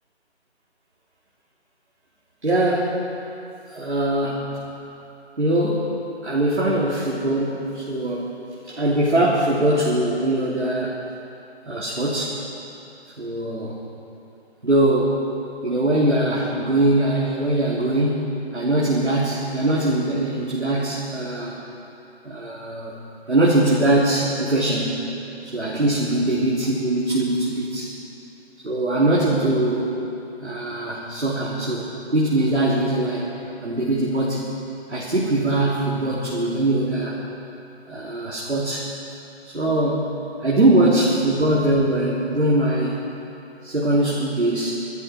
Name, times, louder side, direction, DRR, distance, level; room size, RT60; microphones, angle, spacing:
voice 1, 2.4-3.0 3.7-4.5 5.4-5.9 6.2-8.3 8.7-11.0 11.7-12.4 13.2-13.8 14.6-15.2 15.6-21.5 22.2-22.9 23.3-25.0 25.4-27.9 28.6-29.9 30.4-33.3 33.6-34.5 34.9-37.2 37.9-38.9 39.4-43.0 43.6-44.8, right 1 dB, 90° right, -6 dB, 3.1 m, -22 dB
23.0 x 13.0 x 4.4 m, 2.8 s
figure-of-eight pair, 170°, 33 cm